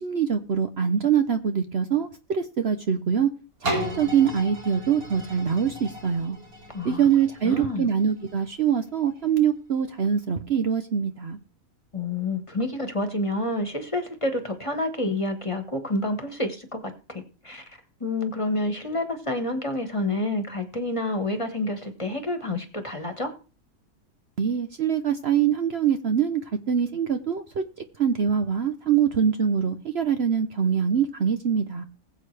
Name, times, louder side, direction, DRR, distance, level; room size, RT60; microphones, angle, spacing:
voice 1, 0.0-3.3 3.7-6.4 6.8-11.4 24.4-26.4 26.7-27.6 28.0-31.9, right 7 dB, 55° right, 8 dB, 1.0 m, -24 dB
sound 1, 3.6-9.4 10.0-10.1, right 1 dB, 75° right, 3.2 m, -35 dB
voice 2, 6.7-7.1 7.4-7.9 11.9-23.3, left 2 dB, 20° left, 6 dB, 1.5 m, -29 dB
20.5 x 7.8 x 3.3 m, 0.37 s
omnidirectional pair, 1.5 m